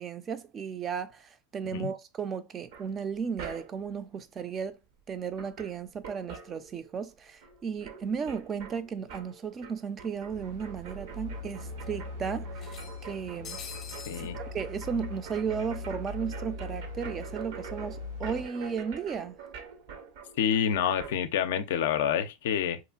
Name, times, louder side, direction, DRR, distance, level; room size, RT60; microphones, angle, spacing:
voice 1, 0.0-4.8 5.1-13.6 14.2-19.4, right 6 dB, 30° right, 0.3 m, -35 dB
sound 1, 2.7-4.0 5.0-5.1 5.3-7.1 7.4-21.2, right 6 dB, 70° right, 0.6 m, -45 dB
sound 2, 9.2-9.3 9.6-9.7 10.7-10.8 11.2-11.3 12.6-14.3, left 6 dB, 35° left, 0.6 m, -45 dB
sound 3, 10.3-18.5, left 3 dB, 85° right, 1.5 m, -41 dB
voice 2, 14.1-14.4 20.4-22.8, left 8 dB, 75° left, 0.4 m, -28 dB
2.9 x 2.4 x 2.2 m
hypercardioid pair, 110°, 0 cm